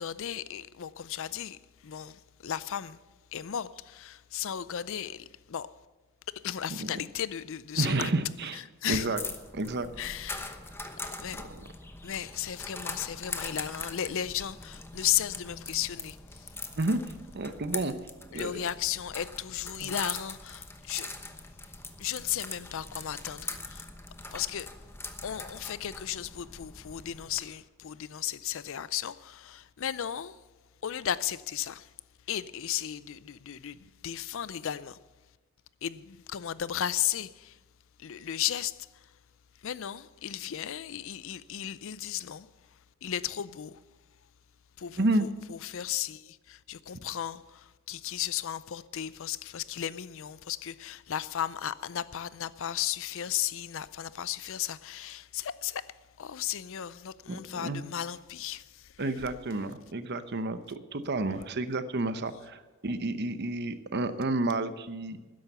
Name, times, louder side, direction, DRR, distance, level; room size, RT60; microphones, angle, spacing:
voice 1, 0.0-3.0 3.3-5.7 6.3-8.1 8.5-9.1 10.0-10.5 11.2-11.4 12.0-16.5 18.3-21.2 22.0-23.9 24.3-24.8 25.2-30.4 30.8-31.9 32.3-35.0 35.8-37.6 38.0-39.2 39.6-43.8 44.8-59.1, left 10 dB, 60° left, 0.5 m, -35 dB
voice 2, 7.8-8.6 8.9-9.2 9.5-9.9 11.3-11.4 16.8-17.0 17.3-17.9 18.3-18.6 19.8-19.9 45.0-45.3 57.3-57.8 59.0-65.2, right 2 dB, 50° right, 0.8 m, -30 dB
sound 1, 9.2-27.4, left 3 dB, 10° left, 1.0 m, -42 dB
13.0 x 10.5 x 6.8 m
head